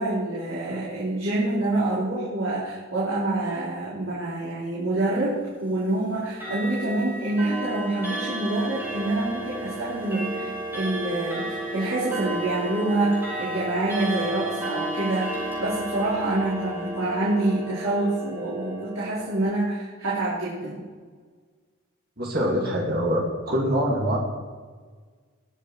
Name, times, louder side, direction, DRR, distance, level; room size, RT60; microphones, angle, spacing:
voice 1, 0.0-20.8, right 2 dB, 75° right, -9 dB, 3.8 m, -26 dB
Clock, 6.3-19.4, right 1 dB, 10° right, 4.5 m, -33 dB
voice 2, 22.2-24.2, equal, 45° right, -2 dB, 2.3 m, -24 dB
20.0 x 6.8 x 4.7 m, 1.5 s
head